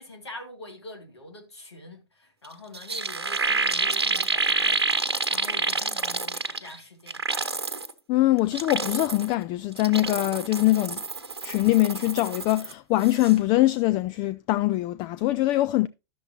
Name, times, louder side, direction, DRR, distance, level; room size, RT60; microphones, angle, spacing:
voice 1, 0.0-7.6, left 1 dB, 85° left, 2.2 m, -44 dB
sound 1, 2.4-2.5 2.7-6.8 7.1-7.9 8.4-9.3 9.7-12.7 13.0-13.3, right 3 dB, 85° right, 1.0 m, -28 dB
voice 2, 8.1-11.0 11.4-15.9, left 17 dB, 35° left, 0.4 m, -23 dB
11.5 x 6.9 x 2.7 m
hypercardioid pair, 105°, 14 cm